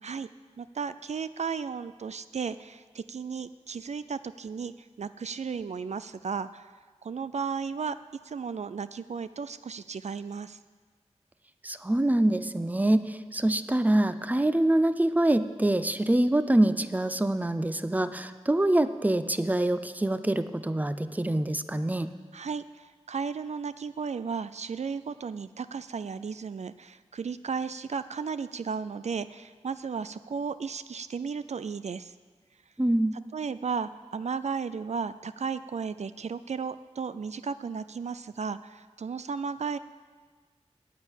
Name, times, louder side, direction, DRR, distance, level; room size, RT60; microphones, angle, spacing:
voice 1, 0.6-6.7 7.0-8.0 8.2-10.6 22.3-32.1 33.3-39.8, right 5 dB, 75° right, 14 dB, 0.4 m, -34 dB
voice 2, 11.6-22.1 32.8-33.2, right 1 dB, 15° right, 12 dB, 0.6 m, -25 dB
10.0 x 9.0 x 8.2 m, 1.5 s
wide cardioid pair, 70°, 12 cm